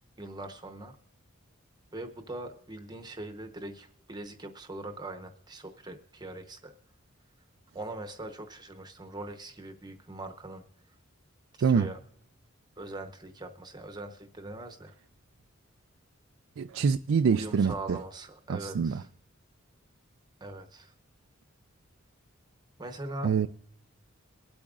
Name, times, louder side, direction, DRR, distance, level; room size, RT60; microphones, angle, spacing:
voice 1, 0.2-1.0 1.9-6.7 7.7-10.6 11.6-12.0 12.8-14.9 17.3-19.1 20.4-20.9 22.8-23.3, right 2 dB, 20° right, 0.9 m, -41 dB
voice 2, 16.6-18.0 18.5-19.0 23.2-23.5, right 6 dB, 70° right, 0.3 m, -25 dB
23.0 x 8.6 x 2.4 m
head